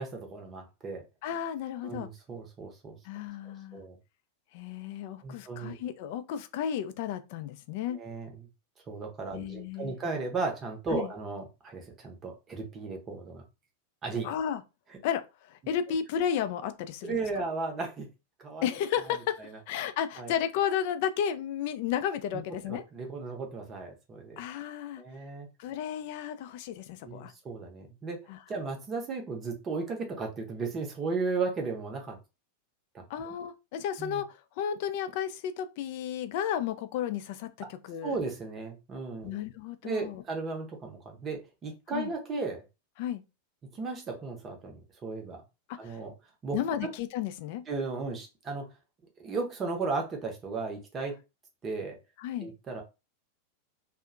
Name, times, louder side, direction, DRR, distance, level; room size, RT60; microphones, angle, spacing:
voice 1, 0.0-1.0 1.8-2.9 3.7-4.0 5.2-5.8 7.9-8.4 8.9-13.4 14.0-14.3 17.0-18.1 18.4-18.7 20.2-20.3 22.7-24.4 25.0-25.5 27.0-28.2 28.5-32.2 34.0-34.2 38.0-39.4 39.8-42.6 43.7-45.4 45.8-46.1 46.4-46.9 47.7-48.6 49.2-51.2 51.6-52.0 52.4-52.8, right 4 dB, 25° right, 0.7 m, -35 dB
voice 2, 1.2-2.1 3.0-3.8 4.5-8.0 9.3-10.0 10.9-11.1 14.2-14.6 15.0-15.2 15.5-17.2 18.6-19.4 19.7-22.8 24.4-25.0 25.6-27.3 28.3-28.4 33.1-38.2 39.2-40.2 41.9-42.1 43.0-43.2 45.7-46.0 46.5-47.6 52.2-52.5, left 9 dB, 50° left, 0.3 m, -33 dB
2.5 x 2.1 x 2.4 m
figure-of-eight pair, 90°, 0 cm